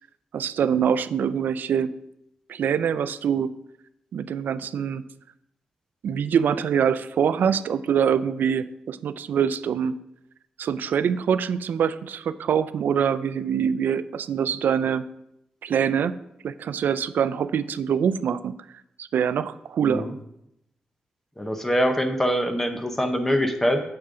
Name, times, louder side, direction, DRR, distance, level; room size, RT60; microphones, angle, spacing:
voice 1, 0.3-1.9 2.5-3.5 4.1-5.0 6.0-9.9 10.6-15.0 15.6-16.2 16.4-18.5 19.0-20.1, right 7 dB, 80° right, 15 dB, 0.4 m, -24 dB
voice 2, 19.8-20.1 21.4-23.8, equal, 10° left, 7 dB, 0.8 m, -24 dB
8.7 x 6.9 x 3.8 m, 0.81 s
wide cardioid pair, 130°, 3 cm